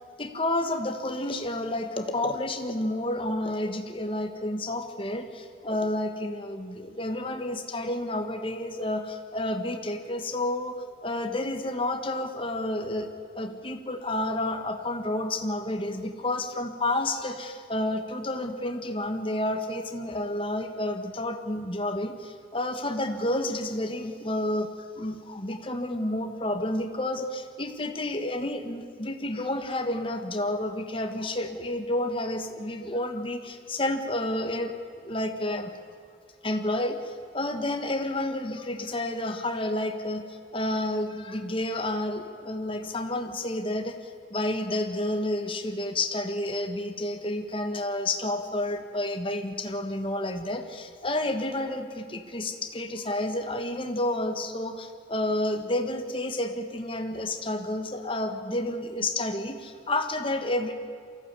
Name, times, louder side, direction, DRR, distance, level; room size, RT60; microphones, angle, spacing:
voice 1, 0.2-24.7 24.9-35.7 36.4-60.7, left 1 dB, 30° left, 6 dB, 1.5 m, -30 dB
23.5 x 15.5 x 8.3 m, 2.3 s
head